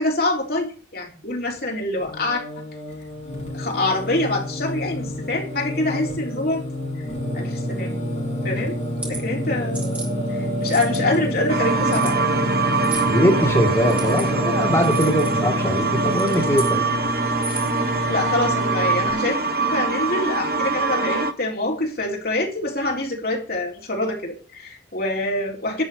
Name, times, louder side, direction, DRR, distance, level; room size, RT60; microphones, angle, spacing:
voice 1, 0.0-2.4 3.5-6.6 7.3-8.0 8.4-9.8 10.3-12.3 18.1-19.4 19.7-25.8, left 2 dB, 50° left, 0 dB, 3.8 m, -25 dB
Singing, 2.0-19.1, equal, 35° left, 6.2 m, -28 dB
sound 1, 8.8-9.2 9.7-10.1 10.6-11.1 11.9-12.1 12.8-13.1 13.8-14.3 14.8-15.3 16.0-16.7 17.3-17.8, right 3 dB, 5° right, 3.9 m, -34 dB
sound 2, 11.5-21.3, right 4 dB, 50° right, 1.4 m, -23 dB
voice 2, 13.1-16.9, equal, 15° left, 0 dB, 2.8 m, -21 dB
12.0 x 6.6 x 8.4 m, 0.37 s
head